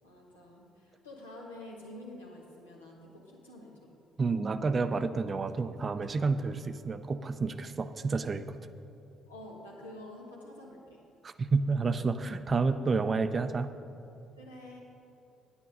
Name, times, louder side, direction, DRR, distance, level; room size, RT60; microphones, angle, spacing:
voice 1, 0.0-4.0 9.3-11.0 14.4-14.8, left 1 dB, 80° left, -3 dB, 1.4 m, -48 dB
voice 2, 4.2-8.4 11.2-13.7, right 4 dB, 35° right, 11 dB, 0.5 m, -30 dB
9.8 x 9.2 x 5.3 m, 2.7 s
figure-of-eight pair, 45°, 0 cm